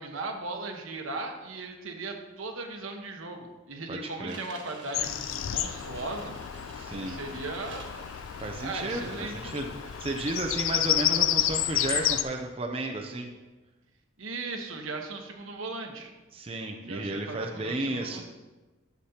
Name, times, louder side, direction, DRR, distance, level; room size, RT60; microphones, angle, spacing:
voice 1, 0.0-6.3 6.9-7.9 8.6-9.6 14.2-16.1 16.8-18.2, right 3 dB, 85° right, 3 dB, 1.2 m, -38 dB
voice 2, 3.9-4.4 6.7-7.2 8.4-13.3 16.3-18.2, right 2 dB, 30° right, 2 dB, 0.5 m, -33 dB
sound 1, 4.3-12.4, right 3 dB, 60° right, 1.5 m, -50 dB
Bird vocalization bird call bird song, 4.9-12.2, left 11 dB, 80° left, 0.4 m, -30 dB
11.5 x 7.3 x 2.9 m, 1.2 s
head